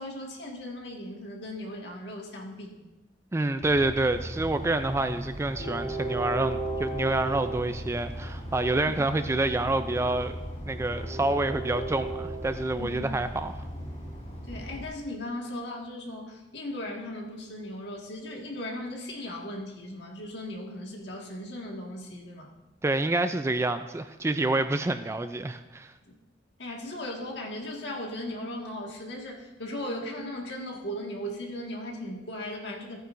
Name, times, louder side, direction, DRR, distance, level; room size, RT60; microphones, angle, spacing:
voice 1, 0.0-2.8 8.9-9.0 12.8-13.0 14.5-22.5 26.6-33.0, left 1 dB, 65° left, 0 dB, 1.7 m, -37 dB
voice 2, 3.3-10.3 10.6-13.6 22.8-25.9, right 2 dB, 15° right, 10 dB, 0.3 m, -28 dB
Train, 3.6-14.9, right 1 dB, 35° left, 2.9 m, -36 dB
14.5 x 9.2 x 2.6 m, 1.0 s
head